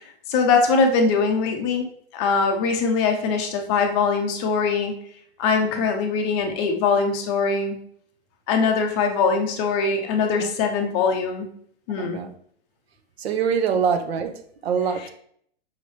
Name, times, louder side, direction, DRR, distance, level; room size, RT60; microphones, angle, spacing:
voice 1, 0.3-1.9 2.1-4.9 5.4-7.8 8.5-11.5 11.9-12.2, left 4 dB, 25° left, 0.5 m, -22 dB
voice 2, 5.6-5.9 10.4-10.5 11.9-12.3 13.2-15.1, right 6 dB, 70° right, 0.7 m, -25 dB
5.4 x 2.9 x 3.2 m
hypercardioid pair, 145°, 32 cm